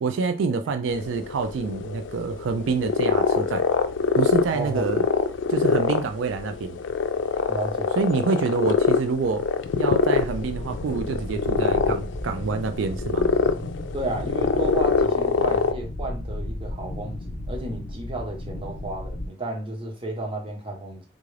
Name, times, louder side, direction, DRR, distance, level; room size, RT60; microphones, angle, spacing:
voice 1, 0.0-3.7 4.1-5.1 5.5-6.8 8.0-9.5 9.8-13.3, right 4 dB, 85° right, 0.4 m, -27 dB
sound 1, 0.9-15.7, left 5 dB, 75° left, 0.4 m, -25 dB
voice 2, 4.5-4.9 7.5-7.9 13.9-21.0, right 2 dB, 30° right, 0.9 m, -32 dB
sound 2, 10.1-19.3, left 1 dB, 55° left, 0.7 m, -34 dB
3.6 x 2.4 x 3.2 m
head